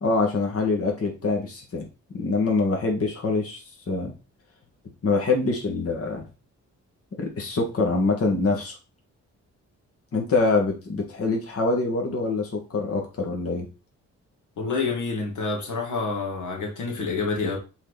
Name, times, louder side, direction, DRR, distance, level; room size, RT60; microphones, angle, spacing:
voice 1, 0.0-1.9 2.1-4.1 5.0-6.3 7.2-8.7 10.1-13.7, left 3 dB, 50° left, 2.1 m, -25 dB
voice 2, 14.6-17.6, left 4 dB, 90° left, 2.3 m, -28 dB
7.9 x 4.5 x 4.2 m
cardioid pair, 110°, 29 cm